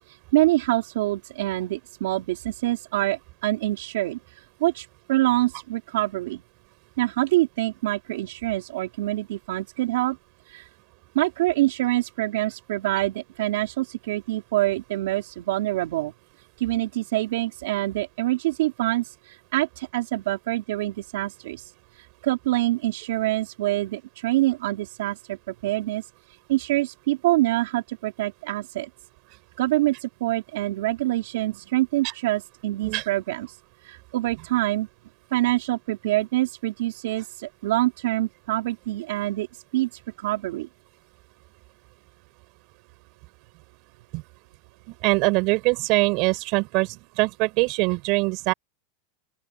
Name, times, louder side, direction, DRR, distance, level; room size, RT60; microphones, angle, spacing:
voice 1, 0.1-6.4 7.0-10.2 10.5-10.7 11.1-16.1 16.6-26.0 26.5-28.9 29.6-33.6 33.8-34.9 35.3-39.5 39.7-40.7, right 17 dB, 70° right, 3.9 m, -25 dB
voice 2, 44.9-48.5, right 26 dB, 45° right, 7.7 m, -23 dB
open air
supercardioid pair, 165°, 0 cm